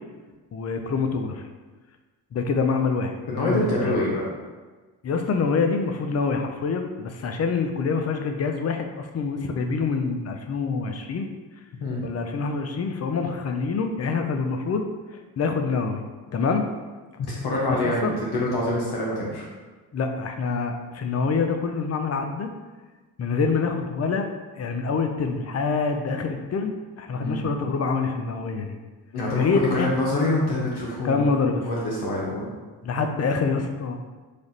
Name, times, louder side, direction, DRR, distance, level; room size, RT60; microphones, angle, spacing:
voice 1, 0.5-1.4 2.3-3.9 5.0-11.3 12.0-14.8 15.4-16.0 16.3-16.6 17.8-18.1 19.9-22.5 23.2-24.3 24.5-28.7 29.3-29.9 31.0-31.7 32.8-34.0, left 4 dB, 35° left, 5 dB, 0.5 m, -26 dB
voice 2, 3.3-4.2 11.8-12.1 17.2-19.4 27.2-27.4 29.1-31.3 31.6-32.4, left 1 dB, 60° left, -4 dB, 0.9 m, -25 dB
3.3 x 2.4 x 4.0 m, 1.3 s
supercardioid pair, 60°, 43 cm